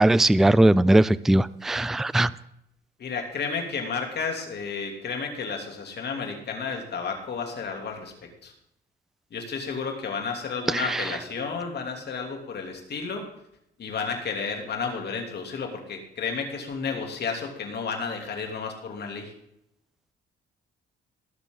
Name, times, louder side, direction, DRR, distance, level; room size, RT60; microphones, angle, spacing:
voice 1, 0.0-2.3 10.7-11.2, right 1 dB, ahead, 18 dB, 0.3 m, -20 dB
voice 2, 3.0-8.1 8.4-8.5 9.3-13.3 13.8-19.3, left 5 dB, 55° left, 3 dB, 3.1 m, -32 dB
20.5 x 7.3 x 3.9 m, 0.78 s
cardioid pair, 90°, 20 cm